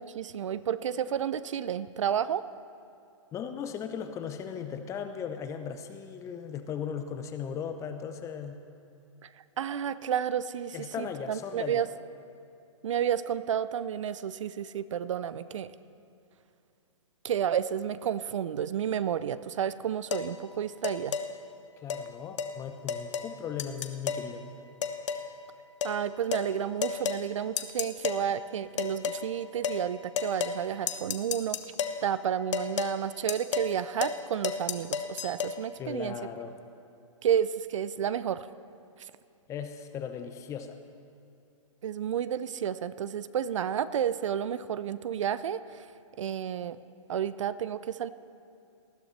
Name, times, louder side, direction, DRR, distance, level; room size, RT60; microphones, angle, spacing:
voice 1, 0.0-2.4 9.6-11.9 12.8-15.7 17.2-21.2 25.8-31.6 32.0-36.1 37.2-38.4 41.8-45.6 46.2-46.8 47.1-48.1, right 9 dB, 70° right, 15 dB, 0.5 m, -31 dB
voice 2, 3.3-8.6 10.7-11.9 21.8-24.5 35.8-36.6 39.5-40.8, left 7 dB, 20° left, 8 dB, 0.7 m, -37 dB
sound 1, 20.1-20.3 20.8-21.3 21.9-22.0 22.4-22.5 22.9-23.3 23.6-24.3 24.8-25.3 25.8-26.0 26.3-26.5 26.8-27.2 27.6-28.2 28.8-29.2 29.6-29.8 30.2-30.6 30.9-32.0 32.5-32.9 33.3-33.7 34.0-34.2 34.4-35.5, left 7 dB, 65° left, 0.9 m, -31 dB
19.5 x 11.5 x 3.2 m, 2.6 s
hypercardioid pair, 135°, 17 cm